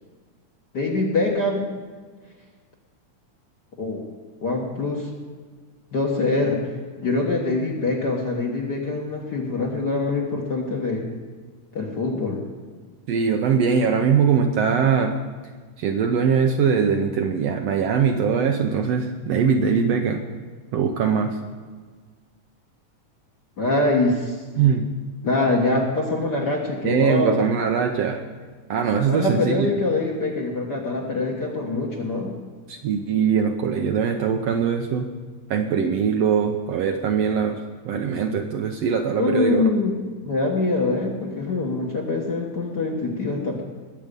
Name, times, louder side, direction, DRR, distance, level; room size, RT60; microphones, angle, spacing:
voice 1, 0.7-1.7 3.8-4.0 4.4-5.1 5.9-11.0 11.7-12.4 21.2-21.3 23.6-24.4 25.2-27.4 29.1-32.3 39.2-39.9 40.2-43.6, left 2 dB, 45° left, -1 dB, 1.4 m, -24 dB
voice 2, 13.1-15.1 15.8-20.2 20.7-21.4 24.6-24.9 26.8-28.2 28.7-29.7 32.7-35.1 35.5-39.7, right 6 dB, 75° right, 4 dB, 1.6 m, -21 dB
21.0 x 7.7 x 5.2 m, 1.5 s
omnidirectional pair, 3.5 m